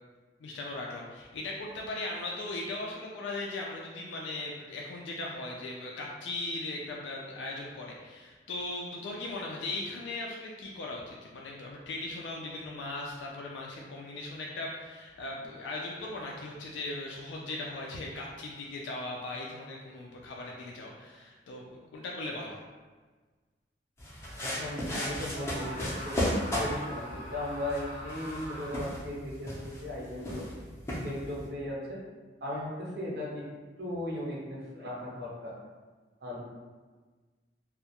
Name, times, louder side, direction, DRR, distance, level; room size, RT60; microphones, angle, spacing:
voice 1, 0.4-22.6, left 2 dB, 80° left, -2 dB, 0.3 m, -38 dB
sound 1, 24.0-31.5, equal, 15° left, 0.5 m, -35 dB
voice 2, 24.4-26.2 26.6-30.4 31.0-32.0 32.4-33.4 33.8-35.5 36.2-36.4, left 1 dB, 60° right, -4 dB, 0.6 m, -37 dB
Screaming, 25.3-29.1, equal, 85° right, 1.0 m, -43 dB
2.3 x 2.0 x 2.8 m, 1.4 s
head